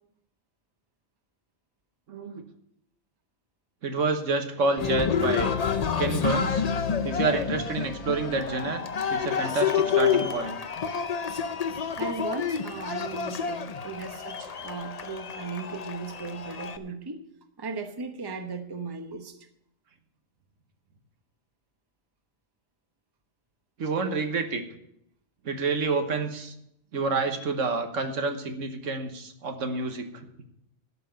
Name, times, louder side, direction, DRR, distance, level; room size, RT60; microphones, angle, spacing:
voice 1, 2.1-2.4 3.8-5.5 6.0-6.6 7.0-8.8 9.1-10.6 13.8-13.9 23.8-24.6 25.4-26.5 26.9-30.3, right 4 dB, 75° right, 7 dB, 1.5 m, -28 dB
Cheering, 4.8-16.8, left 7 dB, 40° left, 0.6 m, -29 dB
voice 2, 12.0-17.2 17.6-19.4, right 4 dB, 20° right, 7 dB, 0.9 m, -37 dB
12.0 x 5.7 x 8.8 m, 0.77 s
omnidirectional pair, 1.3 m